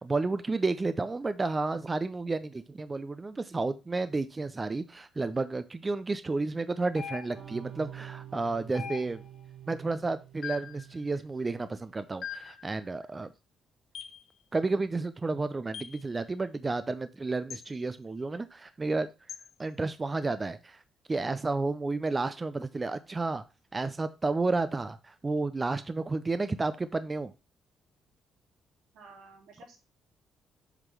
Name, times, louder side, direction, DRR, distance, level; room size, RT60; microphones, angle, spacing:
voice 1, 0.0-9.2 9.7-13.3 14.5-19.1 19.6-20.8 21.1-23.4 23.7-27.3, right 3 dB, 25° right, 12 dB, 0.5 m, -31 dB
sound 1, 7.0-7.6 8.7-9.4 10.4-10.8 12.2-12.6 13.9-14.2 15.7-16.0 17.5-17.7 19.3-19.5, left 8 dB, 60° left, 0.9 m, -41 dB
sound 2, 7.3-12.2, right 11 dB, 45° right, 1.6 m, -48 dB
voice 2, 28.9-29.8, right 3 dB, 85° right, 0 dB, 3.4 m, -52 dB
8.1 x 3.7 x 6.0 m, 0.29 s
cardioid pair, 90°, 0 cm